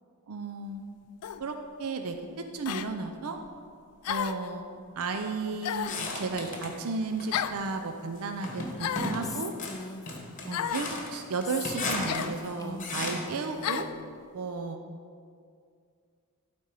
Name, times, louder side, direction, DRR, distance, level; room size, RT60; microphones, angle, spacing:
voice 1, 0.3-0.9 1.4-3.4 4.1-4.7 5.0-9.5 10.5-13.9 14.3-14.8, right 3 dB, 70° right, 6 dB, 0.5 m, -34 dB
sound 1, 1.2-1.4 2.6-2.9 4.0-4.5 5.6-6.0 7.3-7.6 8.8-9.2 10.5-10.9 12.0-12.3 13.6-13.9, left 9 dB, 90° left, 0.4 m, -32 dB
sound 2, 5.9-6.8 7.2-7.8 8.4-13.4, left 2 dB, 35° left, 1.2 m, -36 dB
Female speech woman speaking, 9.2-10.9 11.4-13.9, left 3 dB, 15° left, 0.4 m, -41 dB
12.0 x 4.4 x 4.7 m, 2.2 s
head